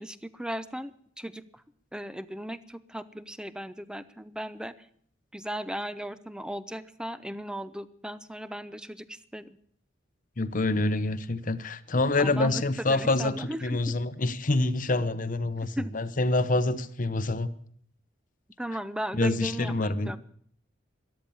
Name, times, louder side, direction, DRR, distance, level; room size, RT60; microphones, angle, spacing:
voice 1, 0.0-1.6 1.9-4.7 5.3-9.6 12.2-14.0 15.6-15.9 18.6-20.2, equal, 5° right, 15 dB, 0.6 m, -37 dB
voice 2, 10.4-17.5 19.1-20.1, left 2 dB, 45° left, 12 dB, 0.9 m, -26 dB
13.5 x 11.5 x 8.7 m, 0.63 s
head